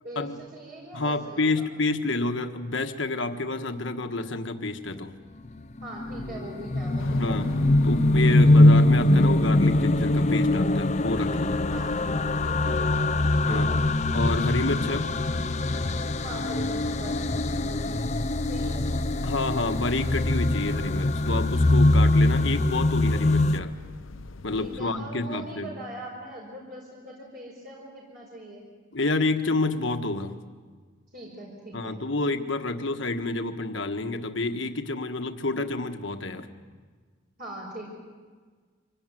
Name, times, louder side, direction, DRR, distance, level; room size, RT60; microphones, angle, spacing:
voice 1, 0.0-1.7 5.8-7.7 11.7-13.8 16.0-18.2 18.4-18.9 24.6-28.7 31.1-32.0 37.4-37.8, right 1 dB, 50° right, -3 dB, 5.3 m, -41 dB
voice 2, 0.9-5.1 7.2-7.5 7.8-11.6 13.4-13.7 14.1-15.2 19.2-23.8 24.4-25.7 28.9-30.3 31.7-36.5, left 2 dB, 70° left, 6 dB, 1.4 m, -29 dB
sound 1, 5.6-23.6, left 1 dB, 35° left, 0.6 m, -22 dB
sound 2, 7.0-24.8, left 2 dB, 85° left, 0.9 m, -40 dB
25.0 x 17.5 x 9.2 m, 1.5 s
head